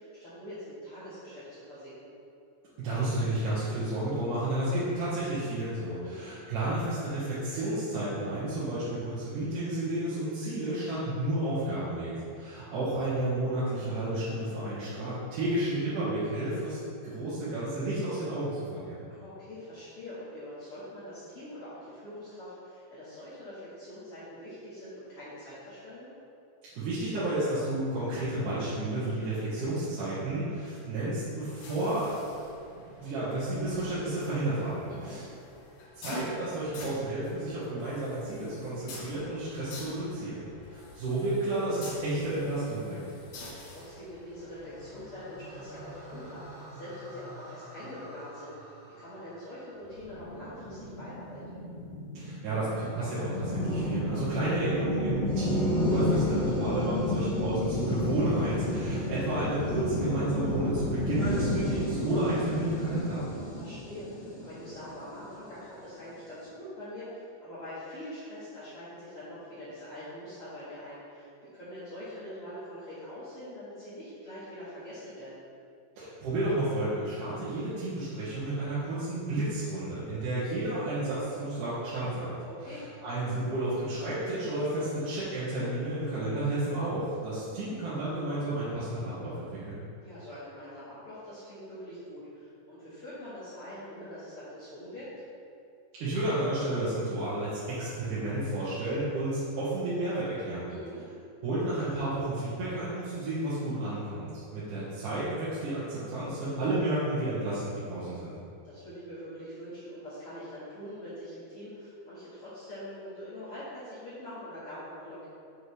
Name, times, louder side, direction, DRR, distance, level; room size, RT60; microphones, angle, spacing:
voice 1, 0.0-2.1 6.0-6.3 19.1-26.1 34.9-35.2 43.4-51.6 54.3-54.5 63.3-75.4 82.5-82.8 90.0-95.2 100.7-101.0 108.6-115.3, equal, 50° left, -12 dB, 2.3 m, -44 dB
voice 2, 2.8-16.8 17.0-19.0 26.8-32.2 32.7-35.2 36.0-40.4 40.7-43.1 52.1-63.2 76.0-82.3 82.7-89.8 96.0-100.7 101.4-108.3, right 1 dB, 75° right, -12 dB, 3.0 m, -31 dB
sound 1, 31.4-46.3, left 2 dB, 85° left, 3.0 m, -47 dB
sound 2, 44.3-50.6, equal, 40° right, 1.9 m, -49 dB
sound 3, 49.9-65.4, left 1 dB, 65° left, 1.0 m, -31 dB
8.0 x 6.4 x 3.4 m, 2.4 s
omnidirectional pair, 3.8 m